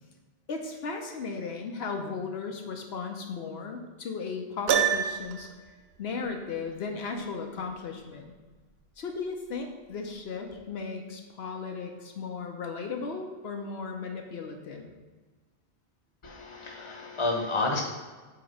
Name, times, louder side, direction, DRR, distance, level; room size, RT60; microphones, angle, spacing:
voice 1, 0.5-5.5 6.0-8.3 9.0-14.9, left 4 dB, 75° left, 3 dB, 1.0 m, -36 dB
Piano, 4.7-5.5, right 8 dB, 75° right, 0.8 m, -25 dB
voice 2, 16.2-17.8, left 2 dB, 30° left, 1 dB, 1.0 m, -30 dB
7.8 x 3.0 x 5.3 m, 1.3 s
omnidirectional pair, 1.1 m